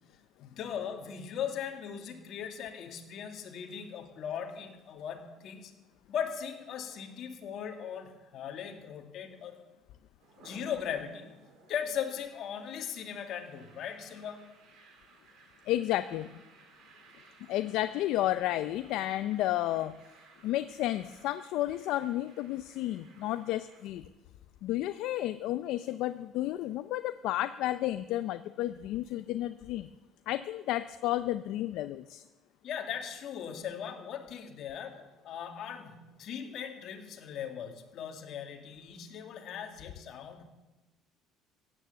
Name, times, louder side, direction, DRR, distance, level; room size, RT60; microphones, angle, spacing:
voice 1, 0.4-5.7 6.1-9.6 10.4-11.4 11.7-14.4 32.6-40.4, left 8 dB, 50° left, 4 dB, 2.2 m, -39 dB
sound 1, 10.2-23.8, right 4 dB, 65° right, 3.4 m, -60 dB
voice 2, 15.7-16.4 17.5-20.0 20.4-24.0 24.6-29.9 30.3-32.2, left 14 dB, 70° left, 11 dB, 0.5 m, -32 dB
16.0 x 9.2 x 7.9 m, 1.1 s
cardioid pair, 140°, 0 cm